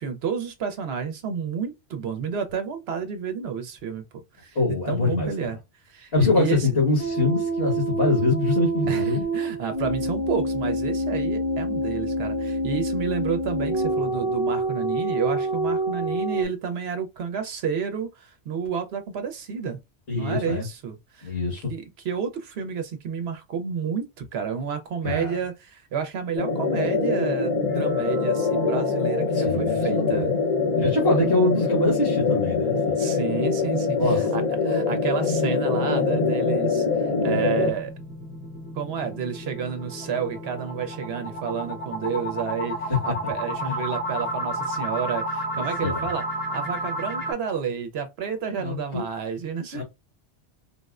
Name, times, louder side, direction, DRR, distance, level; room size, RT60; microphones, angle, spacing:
voice 1, 0.0-4.0 4.4-5.6 5.9-6.7 8.9-19.8 20.1-21.3 21.7-30.3 31.5-31.6 33.0-37.9 38.7-46.2 46.5-49.8, right 6 dB, 70° right, 0.8 m, -30 dB
voice 2, 4.6-5.5 6.1-9.2 20.1-20.7 21.2-21.7 25.0-25.4 29.3-30.4 30.8-33.0 34.0-34.3 42.9-43.0 43.6-43.8 45.8-46.0 48.5-49.0 49.7-49.8, left 3 dB, 65° left, 1.6 m, -24 dB
sound 1, 7.0-16.4, right 2 dB, 45° right, 0.3 m, -26 dB
sound 2, 26.4-37.7, left 4 dB, 40° left, 0.7 m, -24 dB
sound 3, 27.7-29.2 29.6-29.7 30.1-30.2 30.6-30.7 35.5-47.3, equal, 10° left, 0.7 m, -33 dB
4.0 x 2.1 x 2.3 m
omnidirectional pair, 1.1 m